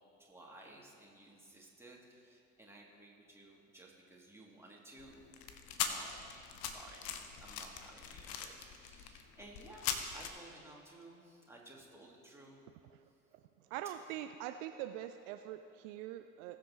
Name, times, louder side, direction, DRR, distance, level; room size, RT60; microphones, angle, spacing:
voice 1, 0.2-5.2 5.8-6.2 6.5-12.6, right 1 dB, 5° right, -3 dB, 2.5 m, -56 dB
sound 1, 5.0-10.3, left 8 dB, 60° left, 1.0 m, -41 dB
voice 2, 13.7-16.6, right 12 dB, 65° right, 8 dB, 0.5 m, -43 dB
20.5 x 7.6 x 3.0 m, 2.7 s
figure-of-eight pair, 50°, 41 cm